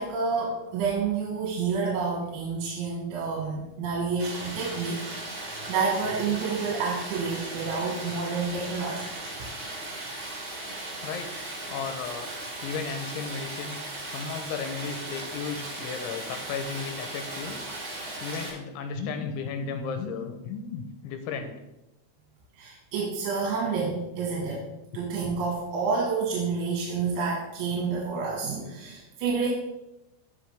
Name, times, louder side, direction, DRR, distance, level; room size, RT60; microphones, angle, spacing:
voice 1, 0.0-5.0 5.3-9.1 22.6-24.6 24.9-29.5, right 5 dB, 75° right, -4 dB, 3.8 m, -29 dB
Stream, 4.2-18.5, right 2 dB, 40° right, 4.7 m, -37 dB
voice 2, 11.7-12.3 12.6-17.6 18.2-21.6, left 5 dB, 80° left, 7 dB, 3.0 m, -34 dB
15.5 x 5.5 x 3.4 m, 0.93 s
omnidirectional pair, 5.6 m